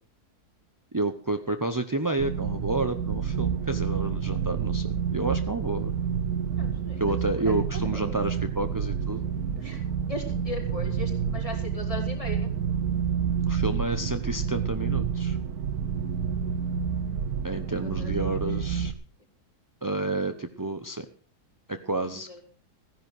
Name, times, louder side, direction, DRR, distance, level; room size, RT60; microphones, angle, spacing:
voice 1, 0.9-5.9 7.0-9.2 13.5-15.4 17.4-18.9 19.8-21.1 21.7-22.4, right 2 dB, 25° right, 8 dB, 0.4 m, -30 dB
sound 1, 2.2-18.9, right 7 dB, 65° right, 1.3 m, -29 dB
voice 2, 6.6-7.0 7.3-8.2 9.6-9.8 10.1-12.5 17.5-18.2 22.0-22.4, left 2 dB, 20° left, -2 dB, 4.6 m, -39 dB
16.0 x 10.5 x 6.2 m, 0.43 s
omnidirectional pair, 1.7 m